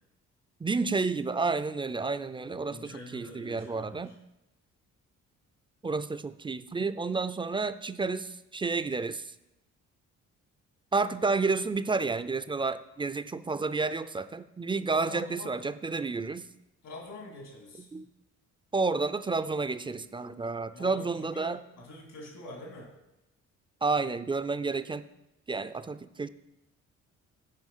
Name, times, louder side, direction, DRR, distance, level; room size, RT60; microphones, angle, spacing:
voice 1, 0.6-4.1 5.8-9.3 10.9-16.5 17.9-18.1 18.7-21.6 23.8-25.0 25.5-26.3, right 4 dB, 15° right, 12 dB, 0.4 m, -30 dB
voice 2, 2.7-4.1 14.9-15.6 16.8-17.9 20.7-22.9, left 1 dB, 80° left, -1 dB, 2.8 m, -45 dB
9.1 x 5.2 x 5.6 m, 0.93 s
cardioid pair, 90°, 30 cm